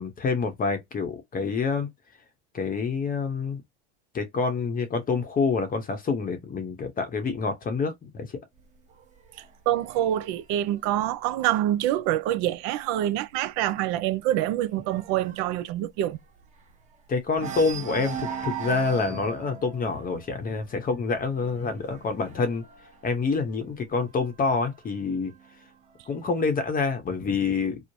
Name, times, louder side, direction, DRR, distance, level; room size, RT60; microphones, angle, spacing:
voice 1, 0.0-1.9 2.5-3.6 4.1-8.4 17.1-22.6 23.0-25.3 26.1-27.8, left 4 dB, 25° left, 0.7 m, -27 dB
sound 1, 8.6-12.2 12.6-12.9 13.2-13.3 13.7-16.9 17.3-23.9 24.7-25.7, right 6 dB, 20° right, 0.9 m, -39 dB
voice 2, 9.7-16.2, right 13 dB, 55° right, 0.5 m, -26 dB
3.1 x 2.0 x 2.6 m
supercardioid pair, 105°, 35 cm